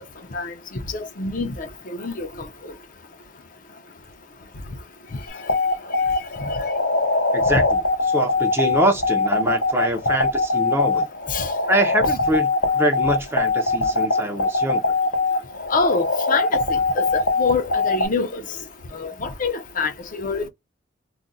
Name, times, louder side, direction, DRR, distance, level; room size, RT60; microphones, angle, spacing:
voice 1, 0.9-2.7 11.3-11.5 15.7-18.4 18.9-20.5, left 4 dB, 45° left, 0.6 m, -26 dB
sound 1, 5.3-18.1, left 3 dB, 85° left, 0.9 m, -21 dB
voice 2, 7.3-11.1 11.7-14.9, right 1 dB, 15° right, 0.5 m, -24 dB
2.4 x 2.1 x 3.8 m
head